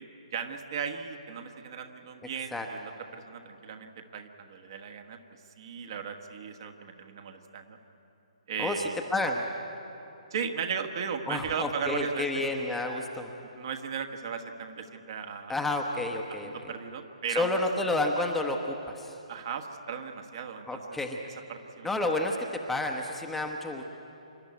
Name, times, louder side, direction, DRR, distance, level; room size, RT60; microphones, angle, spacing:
voice 1, 0.0-5.2 5.6-7.8 8.5-9.0 10.3-12.4 13.6-15.5 16.4-17.5 19.3-21.0 21.5-21.9, right 6 dB, 40° right, 5 dB, 1.5 m, -36 dB
voice 2, 8.6-9.4 11.3-13.3 15.5-16.5 17.3-19.2 20.7-21.2 21.8-23.8, left 2 dB, 5° left, 2 dB, 1.0 m, -30 dB
26.5 x 12.0 x 9.5 m, 2.9 s
figure-of-eight pair, 130°, 4 cm